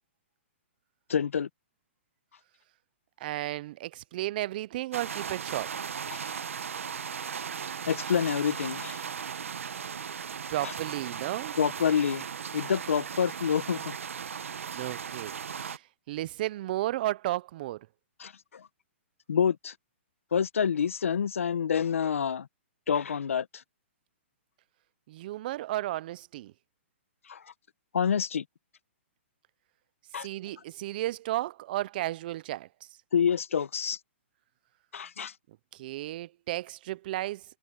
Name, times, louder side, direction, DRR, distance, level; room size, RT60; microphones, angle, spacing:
voice 1, 1.1-1.5 6.1-6.3 7.9-9.1 10.6-10.7 11.6-12.2 12.5-13.9 18.2-18.7 19.3-19.7 20.3-22.5 22.9-23.6 27.3-27.4 27.9-28.4 30.1-30.3 33.1-34.0 34.9-35.3, left 7 dB, 85° left, 1.2 m, -27 dB
voice 2, 3.2-5.7 10.5-11.5 14.7-15.3 15.6-15.8 16.1-17.9 25.1-26.5 30.2-32.7 35.7-37.4, right 15 dB, 45° right, 0.5 m, -33 dB
sound 1, 4.9-15.8, right 7 dB, 85° right, 1.1 m, -37 dB
hypercardioid pair, 150°, 7 cm